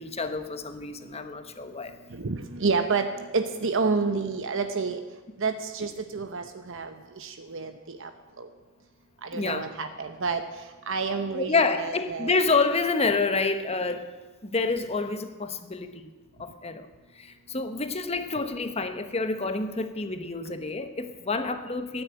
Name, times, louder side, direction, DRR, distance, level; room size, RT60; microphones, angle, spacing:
voice 1, 0.0-1.9 9.3-9.7 11.3-14.1 14.4-16.0 16.4-16.9 17.2-22.0, left 3 dB, 30° left, 8 dB, 1.0 m, -28 dB
voice 2, 2.1-5.0 5.4-8.1 8.4-8.5 9.2-10.4 10.9-12.3, right 4 dB, 65° right, 7 dB, 0.9 m, -29 dB
13.0 x 9.8 x 9.0 m, 1.2 s
head